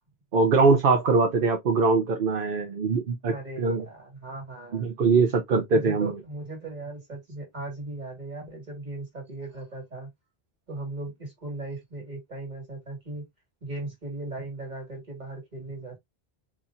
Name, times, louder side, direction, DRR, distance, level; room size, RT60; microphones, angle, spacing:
voice 1, 0.3-3.8 4.7-6.1, right 4 dB, 65° right, 0.9 m, -22 dB
voice 2, 3.3-4.9 5.7-10.1 10.7-13.2 13.6-16.0, right 2 dB, 45° right, 2.0 m, -38 dB
4.2 x 3.0 x 2.5 m
omnidirectional pair, 1.0 m